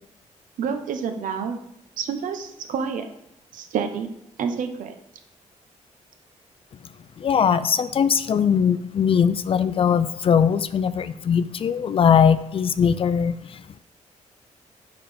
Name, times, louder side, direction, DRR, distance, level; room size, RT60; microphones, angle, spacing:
voice 1, 0.6-1.6 2.0-3.1 3.5-4.1 4.4-4.9, right 6 dB, 90° right, 7 dB, 0.9 m, -28 dB
voice 2, 7.2-13.8, left 7 dB, 45° left, 14 dB, 0.4 m, -20 dB
6.9 x 5.7 x 5.0 m, 0.81 s
wide cardioid pair, 130°, 13 cm